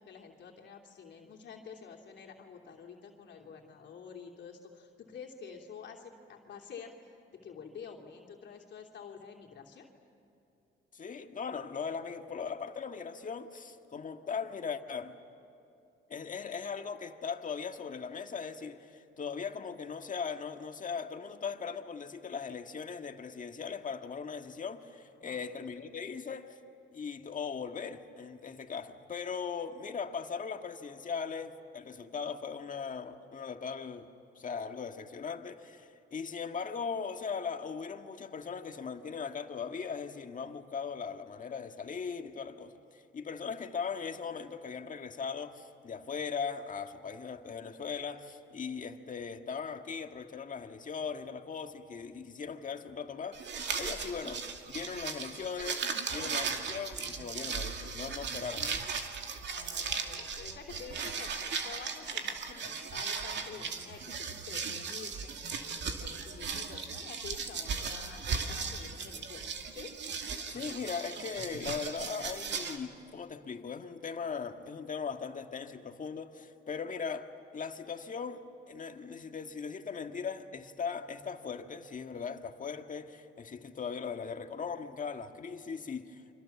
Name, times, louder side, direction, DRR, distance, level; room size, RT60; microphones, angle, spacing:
voice 1, 0.0-9.9 25.2-25.4 59.5-70.0, left 6 dB, 65° left, 2.9 m, -49 dB
voice 2, 10.9-15.2 16.1-26.6 26.9-34.1 34.4-55.8 56.1-58.9 70.5-86.2, left 6 dB, 40° left, 1.7 m, -39 dB
sound 1, 53.3-72.8, right 5 dB, 65° right, 2.5 m, -37 dB
29.5 x 25.0 x 7.1 m
cardioid pair, 90°, 20 cm